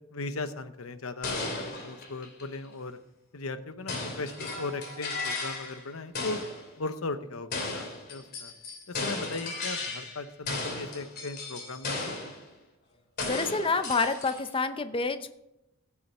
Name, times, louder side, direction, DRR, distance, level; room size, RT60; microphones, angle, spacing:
voice 1, 0.1-3.0 3.3-6.4 6.8-8.5 8.9-12.3, left 3 dB, 90° left, 11 dB, 0.9 m, -38 dB
sound 1, 1.2-2.7 3.9-5.9 6.1-6.7 7.5-10.2 10.5-12.4 13.2-14.6, left 3 dB, 50° left, 3.2 m, -35 dB
voice 2, 13.2-15.3, left 4 dB, 25° left, 10 dB, 0.7 m, -28 dB
15.0 x 7.3 x 5.5 m, 0.89 s
head